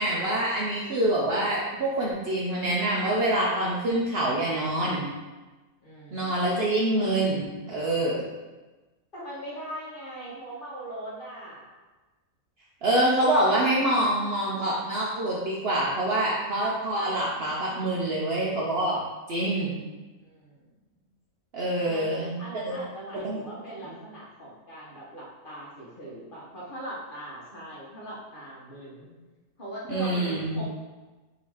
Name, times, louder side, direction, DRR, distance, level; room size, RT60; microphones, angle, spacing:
voice 1, 0.0-5.1 6.1-8.2 12.8-19.0 19.3-19.7 21.5-22.8 23.2-23.4 23.8-23.9 29.9-30.6, right 1 dB, 55° right, -5 dB, 0.7 m, -26 dB
voice 2, 5.8-6.6 9.1-11.7 20.2-20.7 21.8-22.1 22.4-29.1 29.6-30.6, right 1 dB, 40° left, -6 dB, 0.9 m, -40 dB
4.0 x 2.8 x 4.5 m, 1.2 s
omnidirectional pair, 1.6 m